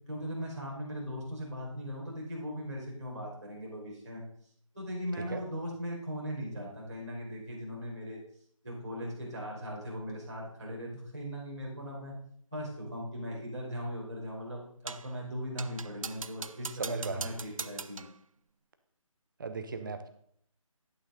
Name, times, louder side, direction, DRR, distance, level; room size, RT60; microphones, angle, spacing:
voice 1, 0.1-4.2 4.7-8.2 8.6-12.1 12.5-18.0, equal, ahead, -27 dB, 0.3 m, -39 dB
sound 1, 14.9-15.1 15.6-18.2, right 5 dB, 75° right, 0.5 m, -41 dB
voice 2, 16.9-17.3 19.4-20.1, right 4 dB, 35° right, 9 dB, 0.9 m, -37 dB
11.0 x 6.3 x 3.9 m, 0.64 s
figure-of-eight pair, 160°, 17 cm